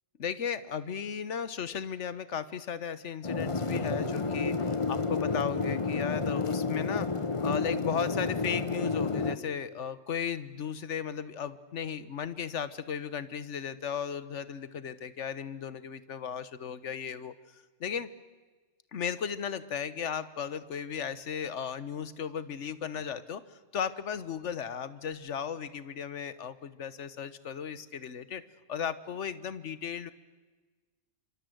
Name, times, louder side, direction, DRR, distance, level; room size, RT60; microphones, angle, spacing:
voice 1, 0.2-18.1 18.9-28.4 28.7-30.1, left 7 dB, 70° left, 15 dB, 1.4 m, -36 dB
sound 1, 3.2-9.4, left 4 dB, 25° left, 0.9 m, -30 dB
27.5 x 25.5 x 7.9 m, 1.3 s
omnidirectional pair, 1.3 m